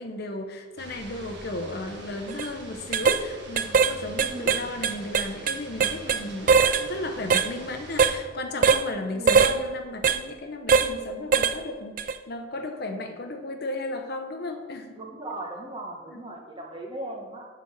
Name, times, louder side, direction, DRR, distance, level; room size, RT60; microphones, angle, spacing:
voice 1, 0.0-15.0 16.1-16.4, left 2 dB, 55° left, 5 dB, 0.9 m, -35 dB
sound 1, 0.8-8.2, right 2 dB, 65° right, 1.5 m, -44 dB
sound 2, 2.3-2.5 2.9-3.2 3.6-3.9 4.2-6.2 6.5-6.8 7.3-7.5 8.0-8.2 8.6-8.8 9.3-9.5 10.0-10.2 10.7-10.9 11.3-11.6 12.0-12.1, right 6 dB, 45° right, 0.4 m, -20 dB
voice 2, 4.3-4.7 9.1-9.5 14.9-17.5, right 1 dB, 25° right, 0 dB, 1.3 m, -38 dB
8.1 x 5.3 x 6.6 m, 1.5 s
head